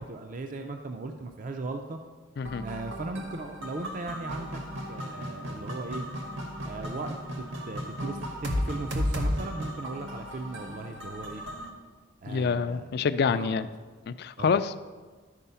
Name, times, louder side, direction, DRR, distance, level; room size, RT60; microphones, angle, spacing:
voice 1, 0.0-2.0 2.6-6.1 6.6-11.4 12.2-12.9 13.3-13.6 14.4-14.6, right 3 dB, 40° right, 5 dB, 0.4 m, -38 dB
sound 1, 2.4-11.7, equal, 70° right, 1.2 m, -35 dB
voice 2, 12.3-13.7 14.1-14.8, left 5 dB, 50° left, 13 dB, 0.3 m, -27 dB
11.5 x 4.6 x 5.6 m, 1.4 s
head